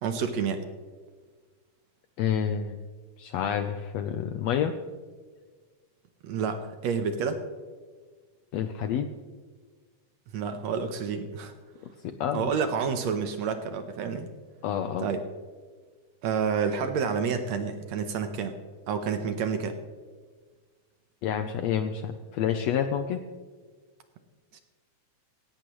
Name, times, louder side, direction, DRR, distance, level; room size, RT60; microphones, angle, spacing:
voice 1, 0.0-0.6 6.2-7.4 10.3-11.5 12.3-14.3 15.0-15.2 16.2-18.5 18.9-19.8 24.5-24.6, right 6 dB, 70° right, 8 dB, 1.8 m, -29 dB
voice 2, 2.2-2.8 3.2-4.7 8.5-9.1 12.0-12.5 14.6-15.1 21.2-23.2, left 8 dB, 80° left, 7 dB, 1.6 m, -28 dB
17.0 x 17.0 x 3.1 m, 1.5 s
omnidirectional pair, 3.7 m